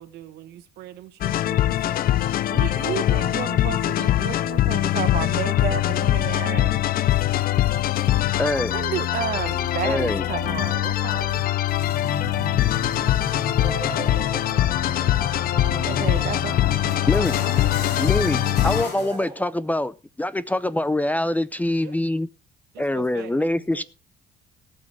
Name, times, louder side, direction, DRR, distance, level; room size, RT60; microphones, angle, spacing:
voice 1, 0.0-2.1 15.7-16.1 21.8-21.9 22.7-23.8, right 13 dB, 80° right, 1.5 m, -43 dB
sound 1, 1.2-18.8, left 13 dB, 60° left, 0.7 m, -22 dB
voice 2, 2.5-6.9 8.7-11.4 15.9-16.5, right 10 dB, 60° right, 1.5 m, -31 dB
sound 2, 7.1-19.2, left 5 dB, 80° left, 3.5 m, -35 dB
voice 3, 8.4-8.8 9.8-10.3 17.1-17.4 18.0-22.3 22.8-23.8, left 1 dB, 10° left, 0.6 m, -24 dB
sound 3, 13.6-19.8, right 4 dB, 25° right, 1.8 m, -39 dB
18.5 x 6.5 x 4.7 m
cardioid pair, 110°, 17 cm